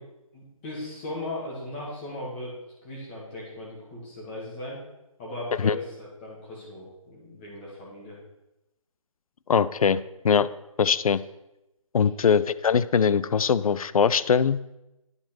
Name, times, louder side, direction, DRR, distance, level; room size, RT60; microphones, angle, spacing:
voice 1, 0.3-2.6 2.8-4.8 5.2-8.2, left 1 dB, 20° left, -5 dB, 2.0 m, -37 dB
voice 2, 9.5-10.5 10.8-11.2 11.9-14.8, left 6 dB, 80° left, 17 dB, 0.4 m, -22 dB
9.7 x 4.5 x 4.5 m, 0.93 s
hypercardioid pair, 165°, 18 cm